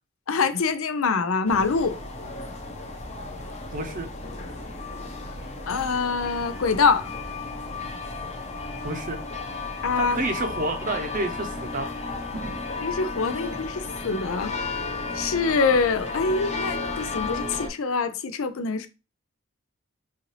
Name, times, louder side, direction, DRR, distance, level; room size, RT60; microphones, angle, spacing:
voice 1, 0.3-2.0 5.7-7.1 9.8-10.2 12.8-14.5 15.1-18.9, left 4 dB, 75° left, 0.5 m, -24 dB
sound 1, 1.5-17.7, left 3 dB, 30° left, 0.9 m, -34 dB
voice 2, 3.7-4.1 8.8-9.2 9.9-11.9 12.3-12.4, right 2 dB, 40° right, 0.7 m, -29 dB
5.6 x 2.5 x 3.2 m
head